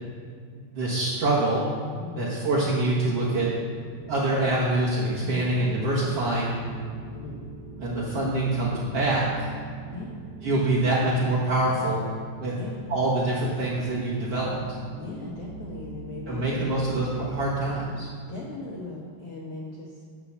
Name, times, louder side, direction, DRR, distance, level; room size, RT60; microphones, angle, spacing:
voice 1, 0.6-1.7 2.2-3.5 4.1-6.5 7.8-9.2 10.4-12.0 12.4-12.6 12.9-14.6 16.3-18.1, right 2 dB, 60° right, -7 dB, 1.6 m, -25 dB
voice 2, 2.0-2.3 5.2-5.5 7.1-7.4 9.9-10.2 12.5-12.8 15.0-16.7 18.3-19.9, left 3 dB, 85° left, -3 dB, 1.3 m, -38 dB
sound 1, 3.4-18.0, right 3 dB, 40° right, 2.1 m, -42 dB
10.0 x 5.8 x 7.1 m, 2.1 s
omnidirectional pair, 4.6 m